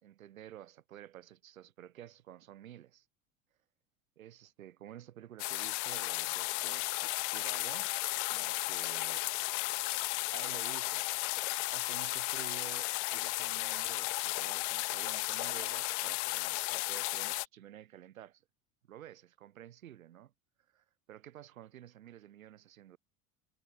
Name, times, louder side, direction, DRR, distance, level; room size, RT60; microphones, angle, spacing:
voice 1, 0.0-3.1 4.2-7.9 8.3-9.3 10.3-11.1 11.7-18.4 18.9-20.3 20.7-23.0, right 12 dB, 80° right, 2.3 m, -51 dB
sound 1, 5.4-17.5, left 28 dB, 60° left, 0.5 m, -34 dB
sound 2, 7.0-15.2, right 29 dB, 65° right, 2.5 m, -56 dB
hypercardioid pair, 80°, 41 cm